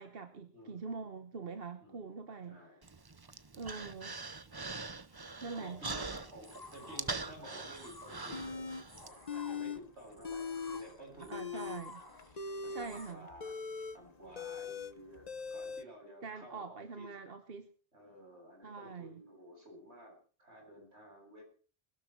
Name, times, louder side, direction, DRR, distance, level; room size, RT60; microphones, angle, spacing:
voice 1, 0.0-2.6 3.5-4.2 5.4-5.8 11.3-12.0 12.7-13.3 16.2-17.7 18.6-19.2, right 4 dB, 60° right, 1.3 m, -44 dB
voice 2, 0.5-1.1 1.8-2.0 2.4-2.8 5.1-5.2 5.5-11.8 12.3-13.6 13.9-17.1 17.9-21.4, equal, 85° right, 8.2 m, -53 dB
Human voice, 2.8-9.1, right 3 dB, 25° right, 0.7 m, -43 dB
sound 1, 6.1-13.1, left 2 dB, 20° left, 1.9 m, -54 dB
sound 2, 8.3-8.8 9.2-9.8 10.1-10.8 11.2-15.8, left 5 dB, 40° left, 1.0 m, -40 dB
21.0 x 12.5 x 4.6 m
omnidirectional pair, 1.1 m